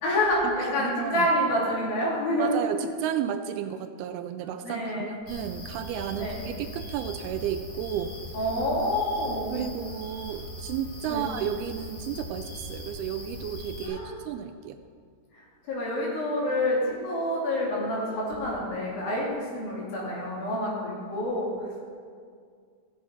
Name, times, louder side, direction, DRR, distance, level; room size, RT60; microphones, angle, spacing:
voice 1, 0.0-2.6 4.6-5.2 6.2-6.4 8.3-9.7 11.1-11.2 13.8-14.1 15.3-21.8, left 1 dB, 65° left, -5 dB, 4.4 m, -28 dB
voice 2, 0.7-1.3 2.4-8.2 9.5-14.8 20.5-20.7, right 9 dB, 80° right, 8 dB, 2.4 m, -33 dB
sound 1, 5.3-13.9, left 1 dB, 45° left, 4.0 m, -40 dB
15.0 x 7.1 x 5.6 m, 2.1 s
omnidirectional pair, 4.7 m